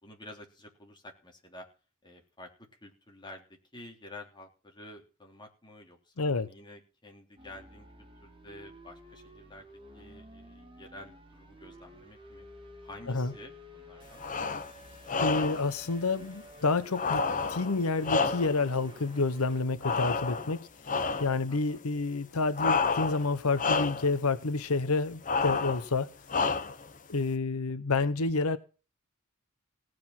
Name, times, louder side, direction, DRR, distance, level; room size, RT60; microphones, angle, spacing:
voice 1, 0.0-1.7 2.0-9.7 9.9-12.5 12.8-14.2 21.5-21.8, left 1 dB, 20° left, 3.3 m, -50 dB
voice 2, 6.2-6.5 13.1-13.3 15.2-17.2 17.5-20.7 21.2-26.1 27.1-28.6, left 3 dB, 80° left, 0.9 m, -29 dB
sound 1, 7.4-19.6, equal, 25° right, 2.6 m, -52 dB
sound 2, 14.2-14.7 15.1-15.7 16.9-18.7 19.8-20.6 20.9-21.4 22.5-23.3 23.5-24.1 25.2-25.9 26.3-26.9, left 4 dB, 40° left, 1.0 m, -29 dB
17.0 x 7.8 x 5.9 m
head